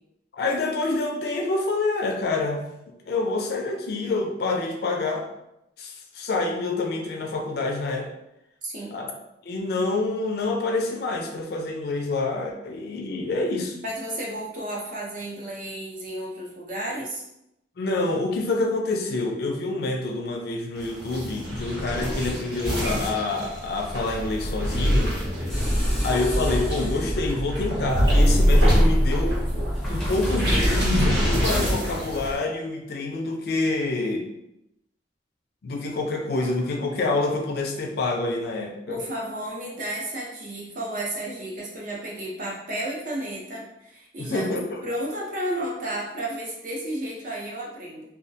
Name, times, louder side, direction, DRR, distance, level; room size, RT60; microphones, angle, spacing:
voice 1, 0.3-2.7 3.1-5.3 5.8-8.1 8.9-9.1 9.4-13.8 17.8-25.2 26.0-29.4 29.9-34.3 35.6-39.0 44.2-44.8, left 2 dB, 60° left, 2 dB, 0.4 m, -27 dB
voice 2, 8.6-9.0 13.8-17.2 38.9-44.5 44.8-48.0, right 1 dB, 50° right, -3 dB, 0.6 m, -32 dB
sound 1, 20.8-32.4, equal, 75° right, 1.0 m, -24 dB
sound 2, 25.5-31.3, equal, 5° left, 0.5 m, -27 dB
2.2 x 2.1 x 2.6 m, 0.85 s
head